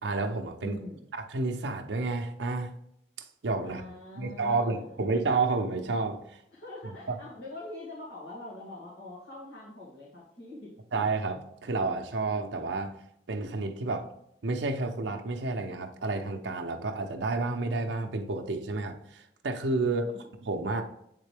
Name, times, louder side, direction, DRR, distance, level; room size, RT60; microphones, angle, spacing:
voice 1, 0.0-0.8 1.1-2.7 3.4-3.8 4.2-6.4 6.9-7.0 10.9-13.0 13.3-14.1 14.4-20.8, right 3 dB, 85° right, 4 dB, 0.7 m, -30 dB
voice 2, 0.6-1.0 3.6-4.9 6.5-10.7 19.8-20.3, left 1 dB, 85° left, -7 dB, 2.1 m, -43 dB
8.2 x 3.7 x 3.4 m, 0.76 s
head